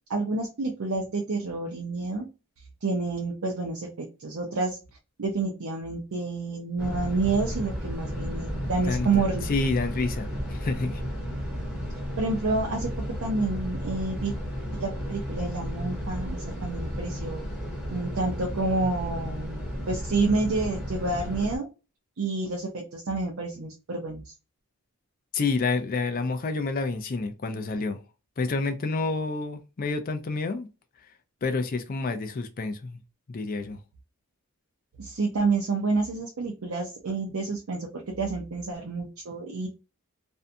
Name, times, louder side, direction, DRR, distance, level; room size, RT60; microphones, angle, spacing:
voice 1, 0.1-2.3 2.8-4.8 5.2-9.5 12.2-12.9 13.2-14.3 14.8-17.5 17.9-19.6 19.9-21.7 22.2-24.2 35.0-39.7, right 3 dB, 70° right, 0.6 m, -29 dB
sound 1, 6.8-21.6, equal, 5° right, 0.8 m, -33 dB
voice 2, 8.8-11.0 25.3-28.0 28.4-30.7 31.4-33.0 33.3-33.8, left 3 dB, 40° left, 0.4 m, -29 dB
2.6 x 2.2 x 2.5 m
head